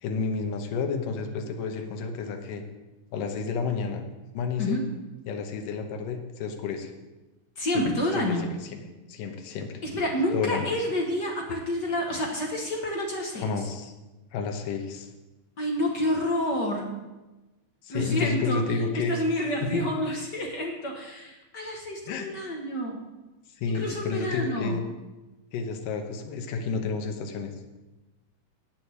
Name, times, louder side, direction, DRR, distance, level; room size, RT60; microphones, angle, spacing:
voice 1, 0.0-2.6 3.1-4.0 4.3-4.8 5.3-6.9 7.7-7.8 8.2-8.8 9.1-9.8 10.3-10.7 13.3-13.9 14.3-15.1 17.8-19.2 19.6-19.8 22.1-22.3 23.6-24.8 25.5-27.5, left 5 dB, 80° left, 5 dB, 2.7 m, -30 dB
voice 2, 7.6-8.5 9.8-13.5 15.6-16.9 17.9-18.6 18.9-23.0 23.7-24.8, left 1 dB, 60° left, 1 dB, 1.0 m, -29 dB
9.1 x 7.7 x 7.7 m, 1.1 s
omnidirectional pair, 3.9 m